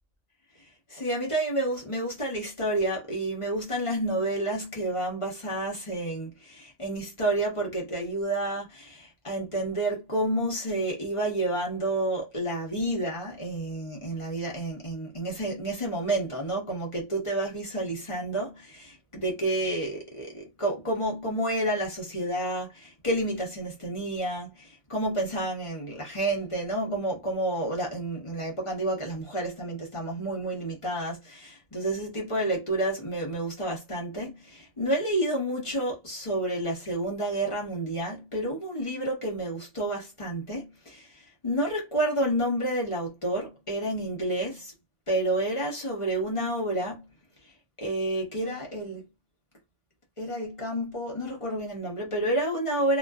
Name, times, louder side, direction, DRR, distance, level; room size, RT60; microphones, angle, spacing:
voice 1, 0.9-44.7 45.1-47.1 47.8-49.0 50.2-53.0, right 1 dB, 30° left, 0.7 m, -30 dB
2.5 x 2.3 x 2.3 m
omnidirectional pair, 1.3 m